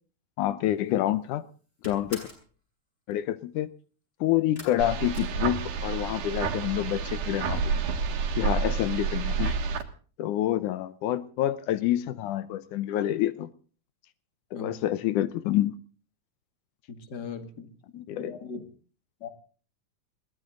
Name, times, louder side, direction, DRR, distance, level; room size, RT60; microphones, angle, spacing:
voice 1, 0.4-1.4 1.9-2.3 3.1-3.7 4.2-7.6 8.4-9.5 10.2-13.5 14.5-15.7 18.1-18.3, left 13 dB, 85° left, 15 dB, 2.4 m, -27 dB
sound 1, 0.8-1.2 1.5-2.5 4.5-6.0 6.3-6.9 7.2-7.3 7.7-7.8, left 1 dB, 20° left, 7.1 m, -46 dB
sound 2, 4.8-9.8, right 5 dB, 85° right, 3.1 m, -29 dB
voice 2, 16.9-18.6 19.2-19.3, left 5 dB, 35° left, 9 dB, 2.4 m, -39 dB
21.5 x 17.0 x 3.8 m, 0.40 s
omnidirectional pair, 3.5 m